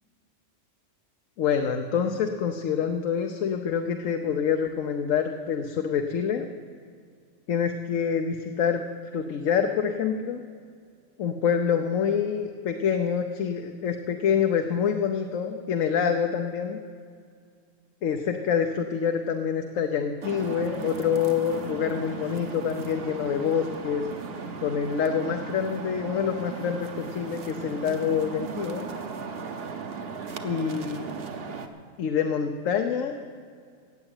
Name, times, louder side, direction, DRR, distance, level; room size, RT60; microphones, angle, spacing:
voice 1, 1.4-6.5 7.5-8.8 9.1-10.4 11.2-16.8 18.0-24.1 24.6-28.9 30.4-31.1 32.0-33.2, left 7 dB, 85° left, 5 dB, 1.1 m, -26 dB
sound 1, 20.2-31.7, right 5 dB, 55° right, 1.1 m, -36 dB
16.0 x 7.7 x 8.9 m, 2.2 s
omnidirectional pair, 1.3 m